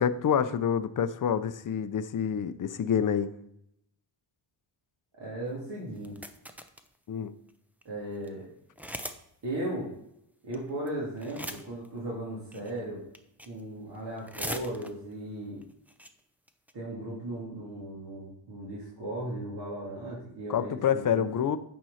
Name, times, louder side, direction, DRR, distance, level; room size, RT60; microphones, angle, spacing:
voice 1, 0.0-3.3 7.1-7.3 20.5-21.6, left 8 dB, 40° left, 0.7 m, -27 dB
voice 2, 5.2-6.1 7.8-8.5 9.4-9.9 10.4-13.0 13.5-15.6 16.7-21.2, right 1 dB, 55° right, 2.9 m, -37 dB
sound 1, 5.9-6.9 7.5-7.6 7.8-7.9 8.2-8.3 8.8-9.2 9.5-9.6 10.5-10.9 11.2-11.9 12.5-12.8 13.1-13.6 13.9-15.1 15.6-15.7 15.9-16.1 16.5-16.7, equal, 5° right, 0.5 m, -39 dB
9.1 x 4.6 x 5.7 m
cardioid pair, 120°, 48 cm